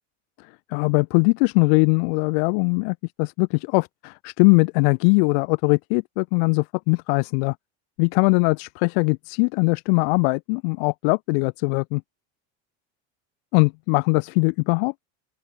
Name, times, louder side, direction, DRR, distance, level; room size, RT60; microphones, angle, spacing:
voice 1, 0.7-7.5 8.0-12.0 13.5-14.9, left 37 dB, 70° left, 1.2 m, -21 dB
open air
cardioid pair, 150°, 30 cm